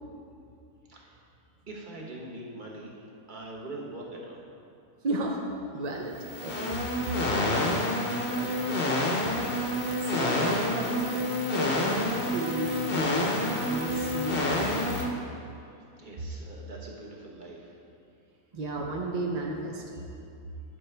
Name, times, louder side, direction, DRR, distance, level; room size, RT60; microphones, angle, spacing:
voice 1, 1.7-3.0 3.3-4.4 8.2-9.4 16.0-17.7, right 2 dB, 35° right, -2 dB, 1.1 m, -43 dB
voice 2, 5.0-5.4 5.7-6.2 6.4-6.7 10.0-11.2 11.5-15.1 18.5-20.0, right 2 dB, 60° right, -1 dB, 0.4 m, -33 dB
sound 1, 6.1-15.0, left 1 dB, 45° left, 1.0 m, -28 dB
11.0 x 6.0 x 3.3 m, 2.5 s
omnidirectional pair, 1.6 m